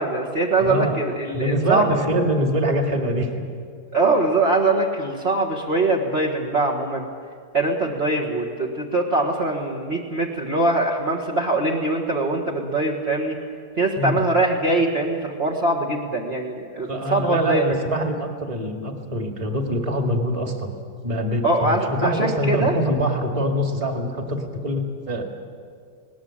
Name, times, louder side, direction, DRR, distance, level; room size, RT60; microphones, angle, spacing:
voice 1, 0.0-2.0 3.9-7.0 7.5-13.4 13.8-17.6 21.4-22.7, right 2 dB, 35° right, -3 dB, 1.8 m, -22 dB
voice 2, 0.6-1.0 1.3-3.3 14.0-14.2 16.9-20.7 21.0-25.2, right 1 dB, 20° right, 3 dB, 2.1 m, -24 dB
20.0 x 19.0 x 8.8 m, 2.1 s
omnidirectional pair, 1.8 m